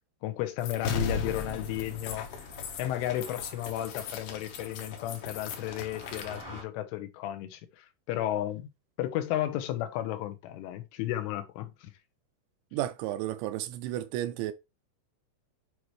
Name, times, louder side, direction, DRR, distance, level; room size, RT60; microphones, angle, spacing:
voice 1, 0.2-2.3 2.8-8.7 9.0-11.9, left 13 dB, 85° left, 3.5 m, -33 dB
sound 1, 0.6-6.4, left 5 dB, 70° left, 3.0 m, -37 dB
sound 2, 0.9-6.6, equal, 15° left, 0.9 m, -50 dB
voice 2, 12.7-14.5, right 13 dB, 80° right, 2.7 m, -32 dB
9.5 x 4.4 x 3.2 m
omnidirectional pair, 5.5 m